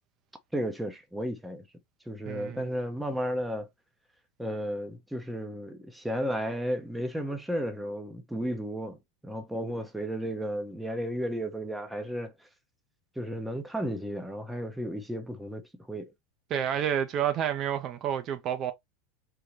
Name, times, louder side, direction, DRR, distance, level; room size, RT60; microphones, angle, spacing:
voice 1, 0.5-1.6 2.1-3.7 4.4-9.0 9.2-12.3 13.2-15.6 15.9-16.1, equal, 5° right, 0.7 m, -33 dB
voice 2, 2.2-2.7 16.5-18.7, right 9 dB, 40° right, 0.5 m, -29 dB
3.8 x 2.1 x 3.0 m
hypercardioid pair, 110°, 0 cm